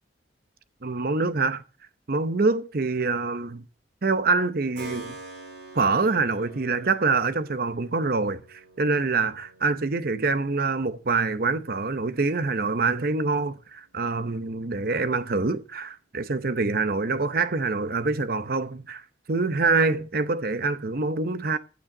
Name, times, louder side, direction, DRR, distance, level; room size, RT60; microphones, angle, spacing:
voice 1, 0.8-1.6 2.1-3.6 4.0-5.1 5.7-19.0 19.3-21.6, right 3 dB, 50° right, 0.8 m, -25 dB
Keyboard (musical), 4.7-13.4, right 3 dB, 70° right, 5.9 m, -47 dB
15.0 x 9.4 x 3.8 m
head